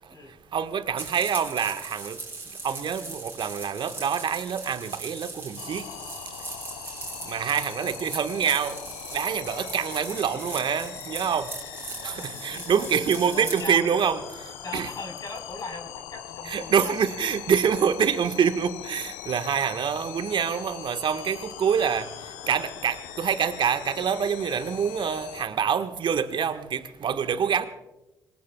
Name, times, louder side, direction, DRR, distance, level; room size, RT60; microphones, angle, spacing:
voice 1, 0.5-2.2 2.6-5.9 7.2-8.8 9.1-11.5 12.0-14.2 14.7-14.9 16.4-22.1 22.5-27.7, right 7 dB, 50° right, 9 dB, 1.4 m, -26 dB
sound 1, 1.0-13.6, right 3 dB, 20° right, 4.1 m, -39 dB
sound 2, 5.6-25.4, left 11 dB, 75° left, 0.9 m, -41 dB
voice 2, 9.5-9.8 11.9-13.0 13.3-13.9 14.6-17.1, left 3 dB, 35° left, 4 dB, 4.6 m, -40 dB
26.5 x 20.0 x 2.3 m, 0.99 s
figure-of-eight pair, 45°, 11 cm